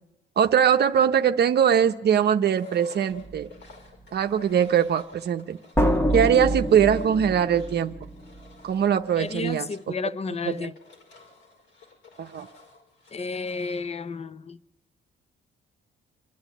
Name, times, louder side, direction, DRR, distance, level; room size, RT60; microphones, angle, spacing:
voice 1, 0.4-3.5 4.1-5.6 6.1-7.9 8.6-9.7 10.5-10.7 12.2-12.5, right 8 dB, 55° right, 0.8 m, -21 dB
Engine, 2.6-14.0, left 3 dB, 70° left, 5.2 m, -53 dB
sound 1, 3.1-3.4 5.8-8.4, equal, 10° left, 1.5 m, -26 dB
voice 2, 9.2-10.8 13.1-14.6, left 4 dB, 30° left, 0.7 m, -32 dB
28.0 x 10.5 x 9.1 m
cardioid pair, 90°, 20 cm